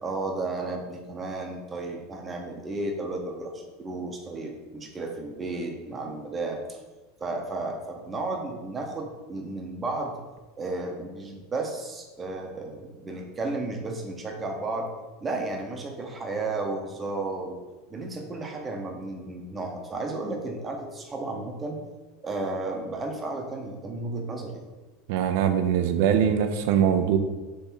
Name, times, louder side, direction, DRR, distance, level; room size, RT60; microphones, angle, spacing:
voice 1, 0.0-6.8 7.2-10.2 10.6-14.9 15.2-17.6 17.9-21.8 22.2-24.6, right 2 dB, 20° right, 2 dB, 0.8 m, -33 dB
voice 2, 25.1-27.2, right 8 dB, 65° right, 8 dB, 0.5 m, -22 dB
3.5 x 3.1 x 4.5 m, 1.2 s
supercardioid pair, 120°, 0 cm